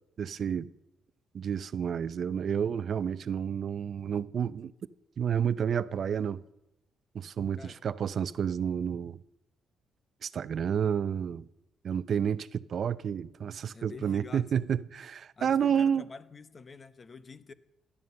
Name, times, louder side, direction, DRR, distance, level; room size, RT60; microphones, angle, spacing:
voice 1, 0.2-0.7 1.3-4.7 5.2-6.4 7.1-9.2 10.2-11.5 11.8-16.1, right 8 dB, 55° right, 0.5 m, -30 dB
voice 2, 13.7-14.5 15.4-17.5, left 5 dB, 35° left, 0.9 m, -47 dB
16.5 x 11.0 x 6.9 m
cardioid pair, 90°, 0 cm